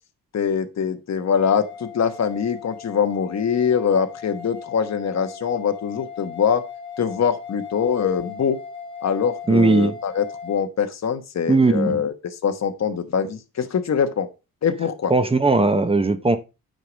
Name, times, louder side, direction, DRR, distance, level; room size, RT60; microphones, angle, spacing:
voice 1, 0.3-6.6 7.0-8.6 9.0-12.1 12.4-14.3 14.6-15.1, left 7 dB, 50° left, 1.3 m, -23 dB
sound 1, 1.3-10.6, left 6 dB, 15° left, 1.9 m, -38 dB
voice 2, 9.5-10.0 11.5-12.0 15.1-16.4, right 3 dB, 15° right, 0.8 m, -18 dB
9.1 x 4.9 x 5.2 m
wide cardioid pair, 165°, 35 cm